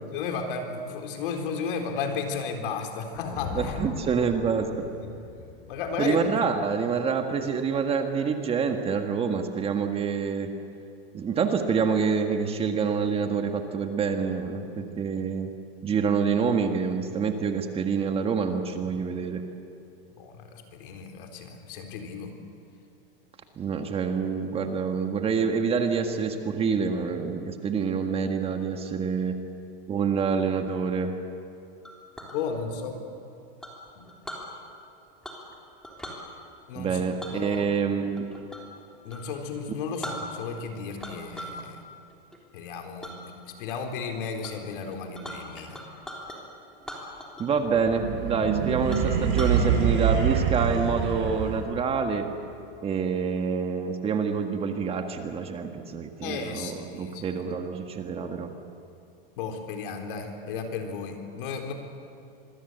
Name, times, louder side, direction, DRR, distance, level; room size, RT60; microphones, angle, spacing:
voice 1, 0.1-3.8 4.1-4.2 4.9-5.1 5.7-6.4 14.8-15.0 20.2-22.3 32.3-33.0 34.0-34.1 36.7-37.1 37.3-37.7 39.0-41.8 42.5-45.8 56.2-57.4 59.4-61.7, left 5 dB, 65° left, 4 dB, 4.1 m, -34 dB
sound 1, 3.1-7.4, left 6 dB, 40° left, 3.5 m, -40 dB
voice 2, 3.5-4.8 6.0-10.5 11.1-15.5 15.8-19.4 23.6-29.3 29.9-31.1 36.7-38.3 39.7-39.8 47.4-52.3 52.8-58.5, right 6 dB, 20° right, 5 dB, 1.6 m, -27 dB
Chink clink, 31.8-32.4 33.6-34.5 35.2-35.5 35.8-36.2 37.2-38.7 39.1-39.3 39.7-39.8 40.0-40.6 41.0-41.6 42.0-42.4 43.0-43.2 43.7-44.0 44.4-44.5 44.8-46.4 46.8-47.6 47.9-48.0 48.4-48.5 48.9-49.6, equal, ahead, 3.4 m, -40 dB
sound 2, 47.6-51.9, right 7 dB, 40° right, 6.1 m, -25 dB
26.0 x 21.5 x 8.1 m, 2.7 s
supercardioid pair, 150°, 29 cm